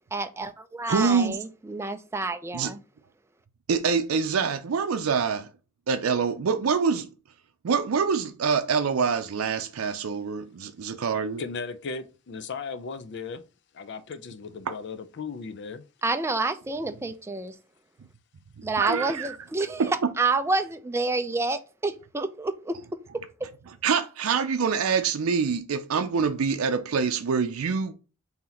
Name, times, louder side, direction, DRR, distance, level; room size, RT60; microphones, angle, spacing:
voice 1, 0.1-2.8 16.0-17.5 18.6-19.9 20.2-22.8, right 3 dB, 10° right, 0.4 m, -28 dB
voice 2, 0.9-1.4 2.5-2.7 3.7-5.5 5.9-7.1 7.6-11.4 18.8-19.4 19.8-20.1 23.8-27.9, right 5 dB, 90° right, 0.5 m, -25 dB
voice 3, 11.4-13.4 13.7-15.8, left 4 dB, 55° left, 0.5 m, -36 dB
3.9 x 2.8 x 4.2 m
head